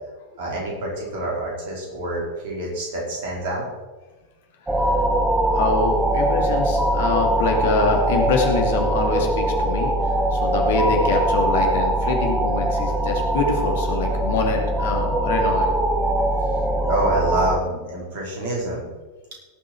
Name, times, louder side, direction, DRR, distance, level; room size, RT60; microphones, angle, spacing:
voice 1, 0.4-3.7 16.8-18.9, right 1 dB, 50° right, -2 dB, 4.9 m, -27 dB
voice 2, 4.6-15.7, left 3 dB, 55° left, 2 dB, 2.4 m, -25 dB
sound 1, 4.7-17.6, right 1 dB, 10° right, 1.4 m, -22 dB
18.0 x 7.6 x 4.6 m, 1.2 s
figure-of-eight pair, 90°, 0 cm